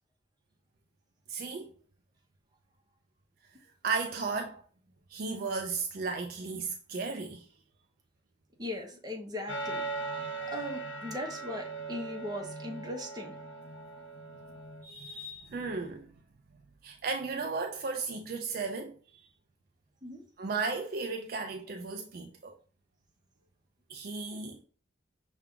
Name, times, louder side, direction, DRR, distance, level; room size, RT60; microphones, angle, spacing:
voice 1, 1.3-1.7 3.8-4.6 5.1-7.5 14.3-14.4 14.8-16.1 16.8-19.3 20.4-22.6 23.9-24.6, right 4 dB, 50° right, 0.4 m, -35 dB
voice 2, 8.6-9.9 10.5-13.3 20.0-20.2 24.3-24.4, left 1 dB, 20° right, 0.9 m, -39 dB
sound 1, 9.5-14.8, right 3 dB, 75° left, 0.6 m, -39 dB
5.7 x 2.3 x 3.6 m
head